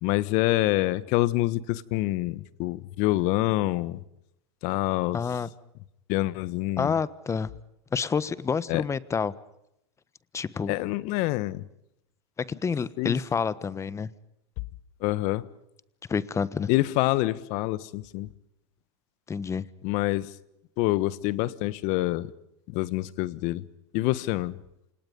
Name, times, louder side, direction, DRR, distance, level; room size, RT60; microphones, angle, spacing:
voice 1, 0.0-4.0 4.6-5.2 6.1-6.9 8.7-8.8 10.7-11.6 13.0-13.1 15.0-15.5 16.7-18.3 19.8-20.3 20.8-22.3 22.7-23.7 23.9-24.6, left 18 dB, 55° left, 1.4 m, -26 dB
voice 2, 5.1-5.5 6.8-7.5 7.9-9.3 10.3-10.8 12.5-14.1 16.1-16.7 19.3-19.7, left 6 dB, 20° left, 1.3 m, -28 dB
28.5 x 27.0 x 5.4 m
hypercardioid pair, 110°, 15 cm